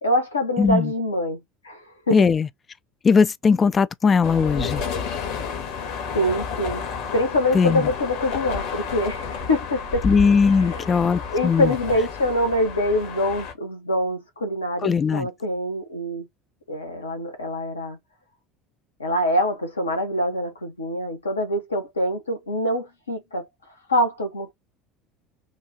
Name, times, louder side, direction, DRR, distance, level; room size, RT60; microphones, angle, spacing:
voice 1, 0.0-2.3 5.7-5.9 6.1-6.8 7.1-10.1 10.6-10.9 11.3-16.2 16.7-18.0 19.0-23.5 23.9-24.5, left 1 dB, 80° left, 1.1 m, -25 dB
voice 2, 0.6-0.9 2.1-2.5 3.0-4.8 7.5-7.9 10.0-11.7 14.8-15.3, left 5 dB, 25° left, 0.4 m, -19 dB
sound 1, 4.2-13.5, left 5 dB, 60° left, 1.4 m, -31 dB
6.4 x 2.4 x 2.8 m
figure-of-eight pair, 65°, 0 cm